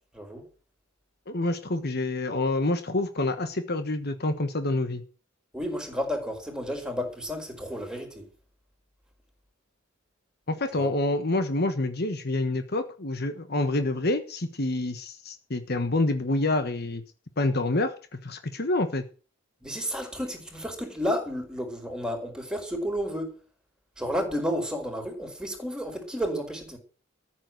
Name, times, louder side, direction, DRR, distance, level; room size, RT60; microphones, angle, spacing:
voice 1, 0.1-0.4 5.5-8.3 10.7-10.9 19.6-23.3 24.0-26.8, equal, 5° right, 4.6 m, -31 dB
voice 2, 1.3-5.0 10.5-17.0 17.4-17.9 18.2-19.0, left 2 dB, 50° left, 1.3 m, -27 dB
14.0 x 7.7 x 7.7 m
head